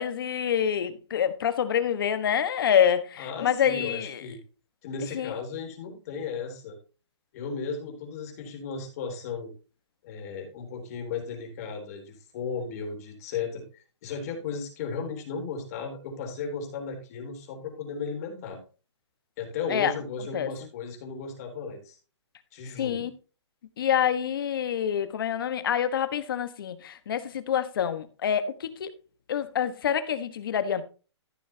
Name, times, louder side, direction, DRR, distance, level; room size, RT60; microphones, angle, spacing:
voice 1, 0.0-4.2 5.1-5.3 19.7-19.9 20.3-20.5 22.8-23.1 23.8-28.9 29.3-30.8, left 9 dB, 50° left, 1.4 m, -26 dB
voice 2, 3.2-4.4 4.8-6.8 7.3-9.5 10.0-13.6 14.0-18.6 19.4-22.0 22.5-23.1, left 5 dB, 35° left, 3.6 m, -35 dB
14.5 x 6.4 x 2.8 m
hypercardioid pair, 165°, 15 cm